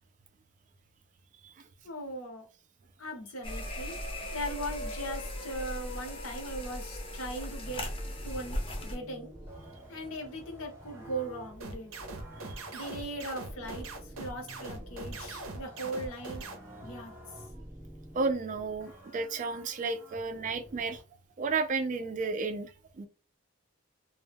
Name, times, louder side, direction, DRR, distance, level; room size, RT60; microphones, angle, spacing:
voice 1, 1.8-2.5 3.0-4.0 4.3-7.8 8.2-9.3 9.9-11.9 12.7-16.5 16.8-17.4, right 1 dB, 75° left, 0.7 m, -39 dB
sound 1, 3.4-9.0, left 1 dB, 25° left, 0.5 m, -37 dB
sound 2, 7.6-21.0, right 1 dB, 15° right, 0.8 m, -49 dB
sound 3, 11.6-16.6, right 2 dB, 85° right, 0.6 m, -41 dB
voice 2, 18.1-21.0 21.4-23.1, right 4 dB, 40° right, 0.3 m, -32 dB
2.1 x 2.0 x 3.3 m
head